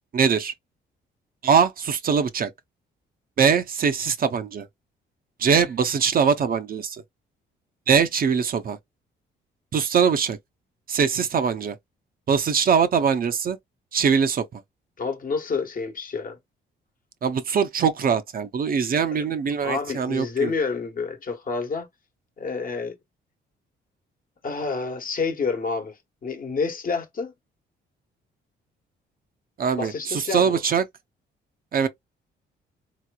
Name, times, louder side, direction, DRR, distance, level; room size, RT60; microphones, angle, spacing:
voice 1, 0.1-0.5 1.4-2.5 3.4-4.7 5.4-7.0 7.9-8.8 9.7-10.4 10.9-11.8 12.3-13.6 13.9-14.6 17.2-20.5 29.6-30.8 31.7-31.9, right 6 dB, 45° right, 0.6 m, -22 dB
voice 2, 15.0-16.4 19.1-19.2 19.6-21.9 22.4-23.0 24.4-27.3 29.7-30.6, left 4 dB, 45° left, 1.1 m, -29 dB
3.8 x 2.9 x 2.3 m
cardioid pair, 90°, 20 cm